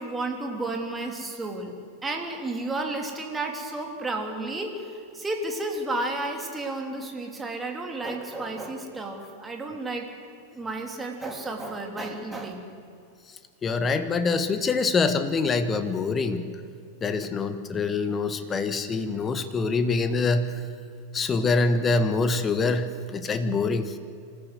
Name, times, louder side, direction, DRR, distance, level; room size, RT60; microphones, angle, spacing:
voice 1, 0.0-1.7 2.0-10.1 10.5-12.7, right 2 dB, 10° right, 2 dB, 3.2 m, -32 dB
voice 2, 13.6-16.4 17.0-20.5 21.1-23.9, left 4 dB, 20° left, 10 dB, 1.5 m, -25 dB
26.0 x 15.0 x 8.1 m, 2.3 s
figure-of-eight pair, 90°, 0 cm